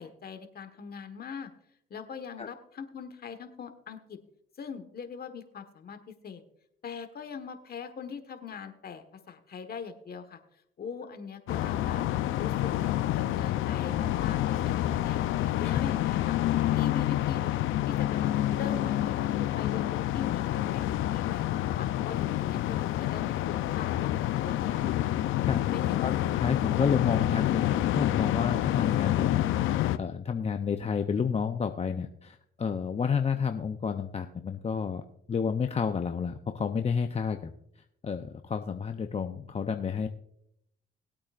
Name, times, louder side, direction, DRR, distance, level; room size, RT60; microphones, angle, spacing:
voice 1, 0.0-1.5 1.9-4.2 4.6-6.4 6.8-10.4 10.8-12.0 12.3-12.9 13.3-15.2 15.6-16.3 16.7-17.5 17.9-18.2 18.5-24.1 24.4-25.0 25.7-26.4, left 6 dB, 50° left, 8 dB, 1.4 m, -41 dB
sound 1, 11.5-30.0, left 13 dB, 85° left, 0.6 m, -28 dB
voice 2, 26.0-37.5 38.0-40.1, left 6 dB, 30° left, 7 dB, 0.6 m, -30 dB
20.0 x 8.6 x 2.5 m, 0.74 s
cardioid pair, 90°, 20 cm